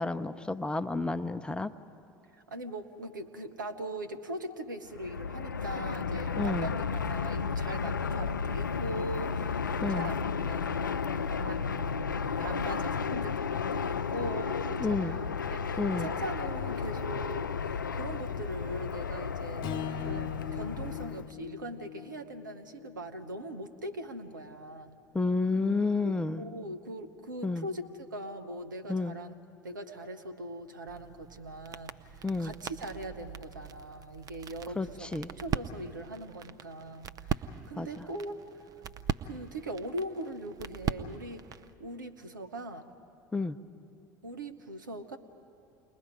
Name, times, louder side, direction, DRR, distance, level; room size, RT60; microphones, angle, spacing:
voice 1, 0.0-1.7 6.4-6.7 9.8-10.1 14.8-15.1 15.8-16.1 25.1-26.4 27.4-27.7 28.9-29.1 32.2-32.5 34.8-35.3 37.8-38.0 43.3-43.6, left 3 dB, 10° left, 10 dB, 0.7 m, -30 dB
voice 2, 2.4-11.0 11.3-19.7 20.0-25.0 26.0-29.3 29.6-38.4 39.2-41.4 41.8-42.9 44.2-45.2, right 1 dB, 85° right, 6 dB, 1.0 m, -41 dB
Fixed-wing aircraft airplane, 4.9-21.3, left 6 dB, 90° left, 0.4 m, -33 dB
Strum, 19.6-24.0, left 9 dB, 45° left, 0.9 m, -41 dB
sound 1, 30.9-41.7, right 8 dB, 35° right, 0.7 m, -40 dB
29.0 x 21.0 x 5.2 m, 2.5 s
figure-of-eight pair, 70°, 10 cm